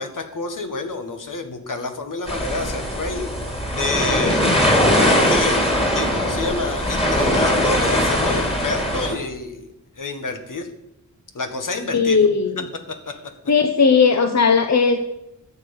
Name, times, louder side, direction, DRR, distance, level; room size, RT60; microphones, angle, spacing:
voice 1, 0.0-5.6 5.9-10.7 11.3-12.3 12.9-13.1, left 3 dB, 80° left, 6 dB, 1.7 m, -28 dB
sound 1, 2.3-9.1, equal, 20° left, 3.3 m, -20 dB
voice 2, 11.9-12.7 13.5-15.0, left 5 dB, 60° left, 7 dB, 1.0 m, -17 dB
13.0 x 7.5 x 7.2 m, 0.89 s
wide cardioid pair, 95°, 31 cm